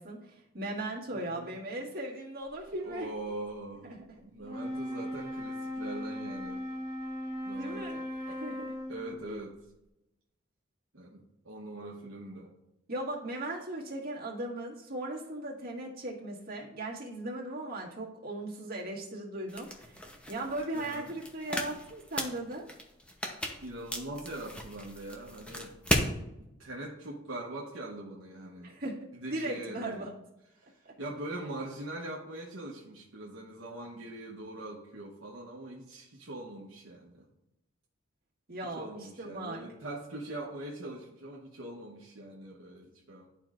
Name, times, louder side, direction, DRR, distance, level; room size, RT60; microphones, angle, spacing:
voice 1, 0.0-3.1 3.9-4.2 7.6-8.0 8.3-8.7 9.3-9.4 12.9-22.6 28.6-30.1 30.8-30.9 38.5-39.6, right 1 dB, 50° right, -4 dB, 1.7 m, -38 dB
voice 2, 1.1-1.5 2.8-6.6 7.4-8.4 8.9-9.5 10.9-12.5 20.7-21.1 23.6-25.8 26.4-28.7 29.1-30.1 30.6-37.3 38.7-43.3, right 1 dB, 75° right, -3 dB, 1.0 m, -42 dB
Wind instrument woodwind instrument, 4.4-9.2, equal, 20° right, 1.6 m, -38 dB
sound 1, 19.5-26.1, left 1 dB, 5° left, 0.8 m, -36 dB
11.0 x 4.5 x 2.5 m, 0.88 s
head